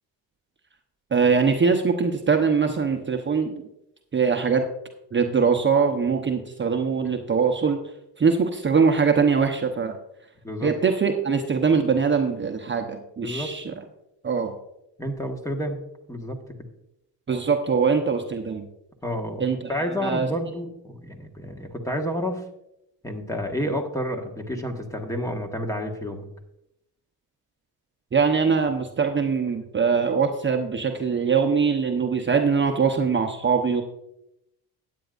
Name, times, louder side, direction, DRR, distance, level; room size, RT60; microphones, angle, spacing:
voice 1, 1.1-3.6 4.1-4.6 5.1-7.8 8.2-10.0 10.6-13.7 14.2-14.5 17.3-18.7 19.4-20.3 28.1-33.8, right 5 dB, 30° right, 3 dB, 0.9 m, -22 dB
voice 2, 13.2-13.5 15.0-15.8 16.1-16.4 19.0-19.4 19.7-22.4 23.0-26.3, equal, 10° left, 2 dB, 1.5 m, -30 dB
13.0 x 9.4 x 2.6 m, 0.82 s
cardioid pair, 90°, 39 cm